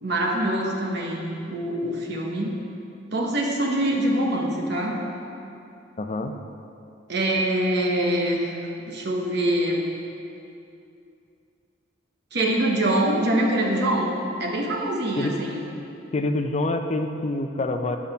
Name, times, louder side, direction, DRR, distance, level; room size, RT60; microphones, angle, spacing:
voice 1, 0.0-2.6 3.1-5.0 7.1-8.5 8.9-9.9 12.3-14.1 14.4-15.6, right 1 dB, 55° right, -1 dB, 1.1 m, -24 dB
voice 2, 6.0-6.3 15.2-15.4 16.1-18.0, left 2 dB, 35° left, 6 dB, 0.5 m, -26 dB
8.4 x 6.1 x 5.5 m, 2.7 s
head